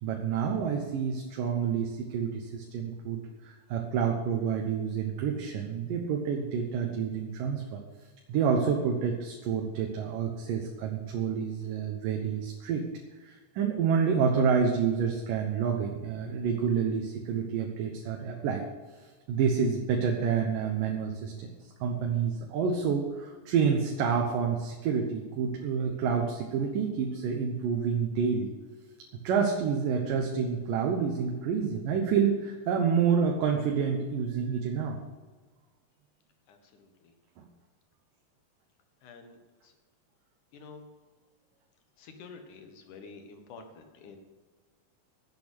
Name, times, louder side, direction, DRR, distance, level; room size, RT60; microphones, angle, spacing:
voice 1, 0.0-7.8 8.3-12.8 13.2-18.6 19.3-28.5 29.2-35.0 37.4-37.5, right 6 dB, 80° right, 1 dB, 2.7 m, -28 dB
voice 2, 36.5-36.9 39.0-39.4 40.5-40.8 42.0-44.2, left 4 dB, 70° left, 6 dB, 2.8 m, -48 dB
10.5 x 8.4 x 8.1 m, 1.4 s
omnidirectional pair, 3.8 m